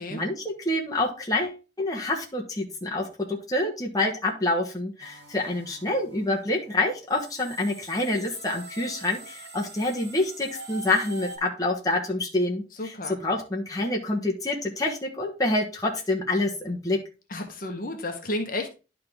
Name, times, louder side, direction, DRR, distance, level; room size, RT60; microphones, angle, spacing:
voice 1, 0.0-17.0, left 2 dB, 20° left, -2 dB, 1.2 m, -27 dB
sound 1, 5.0-11.4, right 2 dB, 60° right, 2.3 m, -44 dB
voice 2, 12.8-13.2 17.3-18.8, left 1 dB, 50° left, 3 dB, 1.3 m, -32 dB
11.5 x 3.8 x 3.5 m, 0.31 s
head